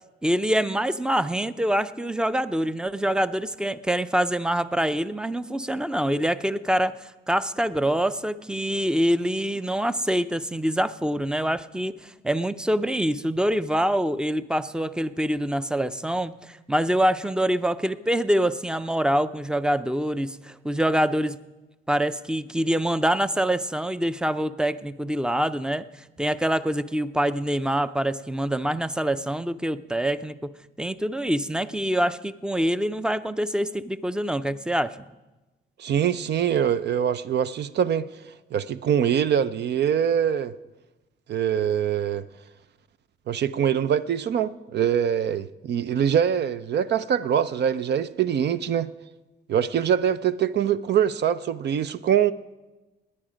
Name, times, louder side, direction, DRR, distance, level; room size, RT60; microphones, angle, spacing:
voice 1, 0.2-21.4 21.9-30.5 30.8-35.0, right 1 dB, 5° right, 0.5 m, -25 dB
voice 2, 35.8-38.1 38.5-40.5 41.3-42.3 43.3-48.9 49.5-52.3, right 9 dB, 60° right, 0.5 m, -23 dB
18.0 x 10.0 x 5.1 m
cardioid pair, 90°, 20 cm